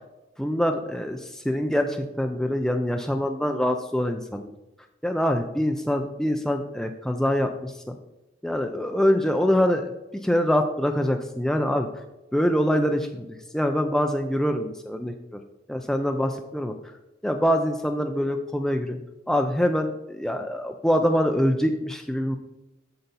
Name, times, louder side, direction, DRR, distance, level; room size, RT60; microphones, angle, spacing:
voice 1, 0.4-4.5 5.0-8.0 8.4-9.9 10.2-11.9 12.3-13.3 13.5-15.1 15.7-16.7 17.2-19.0 19.3-22.4, equal, 5° left, 4 dB, 0.4 m, -24 dB
8.0 x 6.7 x 4.1 m, 0.98 s
head